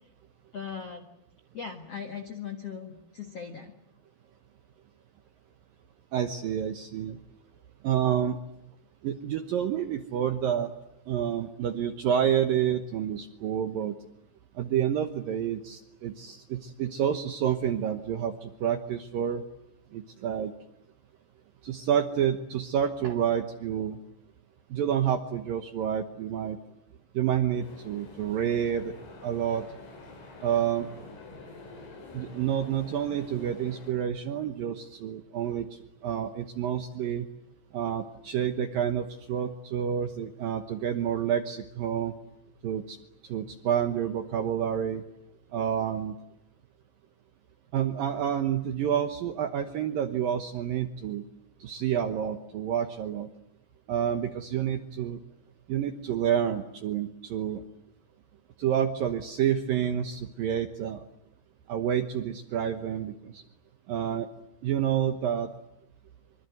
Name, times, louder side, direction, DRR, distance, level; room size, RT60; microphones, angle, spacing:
voice 1, 0.5-1.1 1.5-3.7, left 6 dB, 65° left, 6 dB, 1.5 m, -39 dB
voice 2, 6.1-7.2 7.8-8.4 9.0-10.7 11.1-14.0 14.6-19.4 19.9-20.5 21.6-24.0 24.7-26.6 27.1-28.9 29.2-29.6 30.4-30.9 32.1-35.7 36.0-37.3 37.7-42.1 42.6-43.0 43.2-45.0 45.5-46.2 47.7-51.2 51.6-53.3 53.9-55.2 55.7-57.6 58.6-61.0 61.7-63.4 63.9-64.3 64.6-65.5, right 9 dB, 70° right, 8 dB, 2.2 m, -29 dB
sound 1, 27.6-33.9, left 3 dB, 90° left, 8.4 m, -47 dB
25.0 x 25.0 x 9.4 m, 0.82 s
omnidirectional pair, 5.5 m